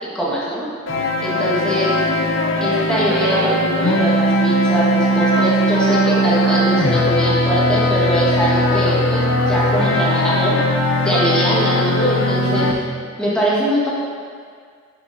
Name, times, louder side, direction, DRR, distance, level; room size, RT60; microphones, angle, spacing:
voice 1, 0.0-0.7 1.2-1.9 2.6-10.6 11.0-12.8 13.2-13.9, right 1 dB, 5° left, -8 dB, 1.5 m, -22 dB
sound 1, 0.9-12.7, left 1 dB, 60° left, 0.7 m, -18 dB
11.5 x 5.9 x 2.7 m, 2.1 s
head